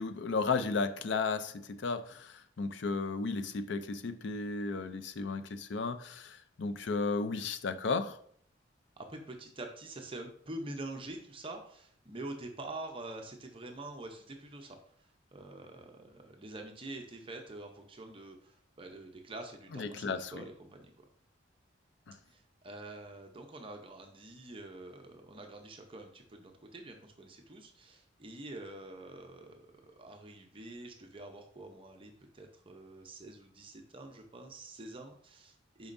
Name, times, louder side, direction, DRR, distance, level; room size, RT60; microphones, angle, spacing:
voice 1, 0.0-8.2 19.7-20.4 22.1-22.2, left 4 dB, 65° left, 0.5 m, -34 dB
voice 2, 9.0-21.0 22.3-35.9, right 2 dB, 25° right, 0.7 m, -46 dB
6.9 x 5.2 x 2.6 m
head